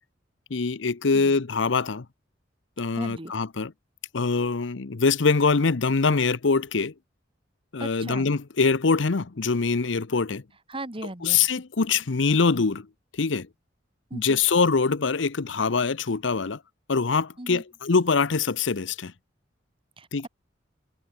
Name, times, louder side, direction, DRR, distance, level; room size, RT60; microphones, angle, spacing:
voice 1, 0.5-2.1 2.8-3.7 4.1-6.9 7.7-10.4 11.2-12.9 13.1-13.5 14.1-16.6 16.9-19.1 20.1-20.3, left 4 dB, 75° left, 0.8 m, -23 dB
voice 2, 3.0-3.3 7.8-8.3 10.7-11.5 14.1-14.4 17.4-17.6 20.0-20.1, right 1 dB, 30° right, 2.3 m, -37 dB
head